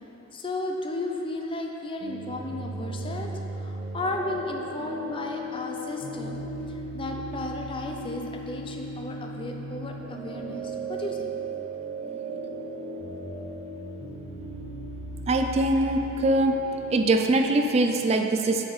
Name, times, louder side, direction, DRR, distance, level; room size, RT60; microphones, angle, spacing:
voice 1, 0.3-11.3, left 2 dB, 25° left, 2 dB, 0.5 m, -34 dB
sound 1, 2.0-18.0, right 2 dB, 65° right, 0.9 m, -36 dB
voice 2, 15.3-16.6 16.9-18.6, right 2 dB, 30° right, 5 dB, 0.3 m, -22 dB
7.4 x 4.9 x 3.9 m, 3.0 s
head